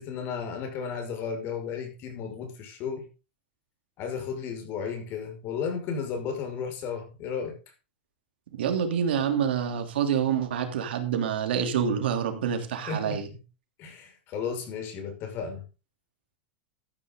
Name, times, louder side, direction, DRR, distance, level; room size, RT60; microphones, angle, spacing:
voice 1, 0.0-3.1 4.0-7.6 12.8-13.4 13.8-15.6, left 6 dB, 45° left, 5.6 m, -34 dB
voice 2, 8.6-13.3, right 8 dB, 85° right, 3.2 m, -27 dB
14.0 x 10.5 x 3.9 m
supercardioid pair, 140°, 5 cm